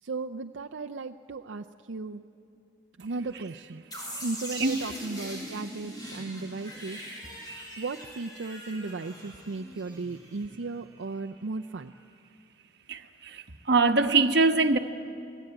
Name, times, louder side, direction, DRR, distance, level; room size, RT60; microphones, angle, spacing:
voice 1, 0.0-2.2 3.0-3.8 4.2-7.0 7.8-11.9, right 3 dB, 85° right, 4 dB, 0.6 m, -36 dB
sound 1, 3.9-10.7, equal, 20° left, 6.1 m, -42 dB
voice 2, 12.9-14.8, right 3 dB, 60° right, 5 dB, 1.2 m, -23 dB
28.5 x 19.0 x 8.9 m, 2.7 s
head